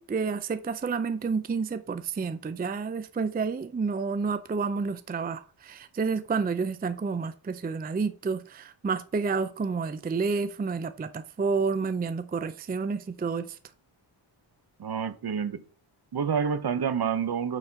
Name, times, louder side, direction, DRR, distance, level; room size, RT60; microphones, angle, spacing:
voice 1, 0.0-13.6, right 5 dB, 20° right, 0.4 m, -30 dB
voice 2, 14.8-15.6 16.1-17.6, right 7 dB, 50° right, 0.8 m, -28 dB
8.8 x 4.2 x 4.5 m
wide cardioid pair, 110°, 47 cm